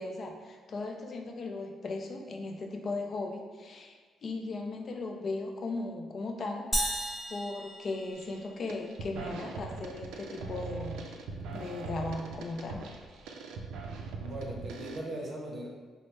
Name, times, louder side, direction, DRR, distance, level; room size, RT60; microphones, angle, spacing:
voice 1, 0.0-4.0 4.2-6.7 7.3-11.2 11.5-12.9, left 3 dB, 50° left, 3 dB, 0.5 m, -37 dB
sound 1, 6.7-8.7, equal, ahead, 0.6 m, -34 dB
sound 2, 8.1-8.4 8.7-15.0, right 4 dB, 85° right, 0.4 m, -41 dB
voice 2, 14.1-15.7, right 1 dB, 45° right, -3 dB, 0.6 m, -39 dB
3.3 x 2.0 x 4.1 m, 1.4 s
cardioid pair, 90°, 0 cm